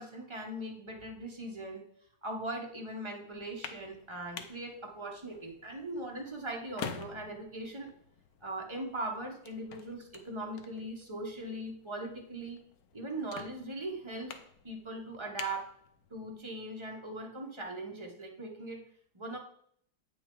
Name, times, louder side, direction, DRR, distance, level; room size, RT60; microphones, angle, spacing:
voice 1, 0.0-1.8 2.2-7.9 8.4-12.6 12.9-14.4 14.6-15.7 16.1-18.8 19.1-19.4, right 1 dB, 30° right, 0 dB, 0.5 m, -40 dB
sound 1, 3.3-16.4, left 7 dB, 70° left, 0.9 m, -49 dB
8.4 x 5.9 x 3.8 m, 0.65 s
omnidirectional pair, 2.3 m